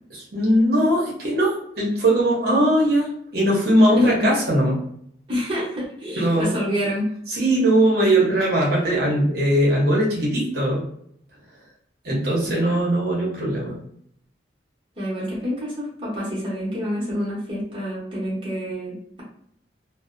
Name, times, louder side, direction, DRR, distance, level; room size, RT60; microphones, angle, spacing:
voice 1, 0.1-4.8 6.2-6.5 7.3-10.8 12.0-13.7, right 1 dB, 55° right, -5 dB, 0.8 m, -20 dB
voice 2, 4.0-4.3 5.3-7.1 12.5-12.8 15.0-19.2, equal, 30° right, -7 dB, 0.9 m, -27 dB
2.6 x 2.0 x 2.5 m, 0.69 s
head